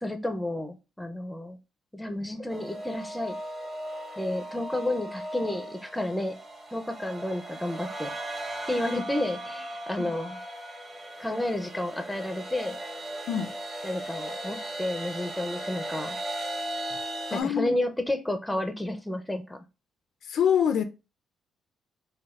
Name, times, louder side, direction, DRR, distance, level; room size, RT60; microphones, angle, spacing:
voice 1, 0.0-1.6 1.9-3.4 4.2-6.4 6.7-8.1 8.7-10.4 11.2-12.8 13.8-16.2 17.3-19.6, left 1 dB, 5° left, 0.5 m, -31 dB
sound 1, 2.5-17.4, right 1 dB, 25° right, 0.9 m, -37 dB
voice 2, 17.3-17.8 20.3-20.8, left 8 dB, 70° left, 0.4 m, -25 dB
4.0 x 2.2 x 2.3 m
cardioid pair, 90°, 0 cm